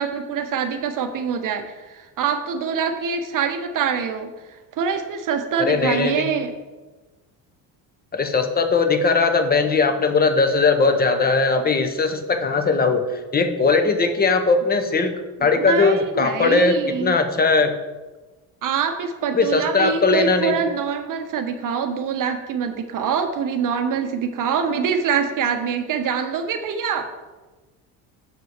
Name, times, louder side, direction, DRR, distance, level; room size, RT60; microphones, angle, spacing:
voice 1, 0.0-4.3 4.8-6.5 15.6-17.1 18.6-27.1, right 6 dB, 50° right, 7 dB, 0.7 m, -24 dB
voice 2, 5.6-6.2 8.1-17.7 19.3-20.6, left 4 dB, 20° left, 7 dB, 0.9 m, -19 dB
6.8 x 4.1 x 6.4 m, 1.2 s
supercardioid pair, 95°, 43 cm